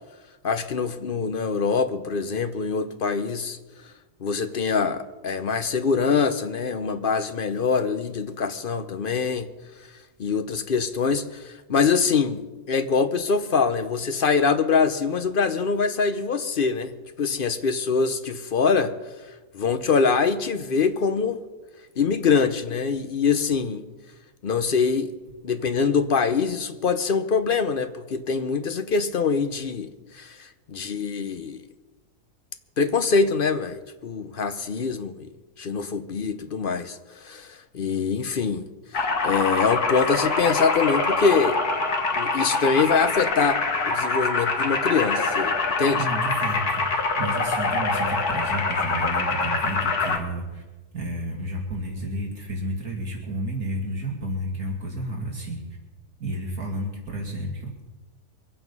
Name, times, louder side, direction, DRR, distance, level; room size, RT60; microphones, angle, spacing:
voice 1, 0.4-3.6 4.2-9.5 10.2-12.4 12.7-16.9 17.2-18.9 19.5-21.4 22.0-23.9 24.4-25.1 25.4-31.6 32.8-35.3 35.6-38.7 38.9-41.6 42.2-46.1, left 5 dB, 50° left, 9 dB, 0.7 m, -24 dB
sound 1, 38.9-50.2, left 3 dB, 65° left, 2.1 m, -25 dB
voice 2, 46.0-50.6 50.9-55.6 56.2-57.8, right 1 dB, 65° right, -1 dB, 2.7 m, -31 dB
23.0 x 8.9 x 5.4 m, 1.2 s
omnidirectional pair, 1.7 m